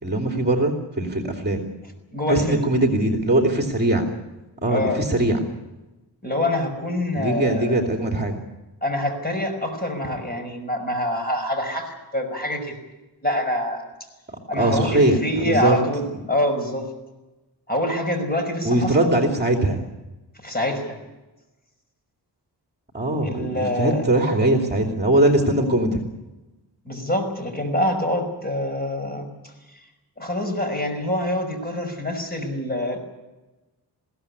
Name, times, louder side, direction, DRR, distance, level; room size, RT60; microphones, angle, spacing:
voice 1, 0.0-1.6 2.3-4.0 4.6-5.4 7.1-8.4 14.6-15.8 18.6-19.8 22.9-26.0, right 1 dB, 25° right, 2 dB, 2.9 m, -21 dB
voice 2, 2.1-2.6 4.7-5.0 6.2-7.8 8.8-12.7 13.2-13.8 14.5-16.9 17.7-19.1 20.4-21.0 23.2-24.0 26.9-29.3 30.2-33.0, left 1 dB, 25° left, 5 dB, 5.4 m, -25 dB
21.5 x 16.5 x 9.8 m, 1.1 s
wide cardioid pair, 120°, 40 cm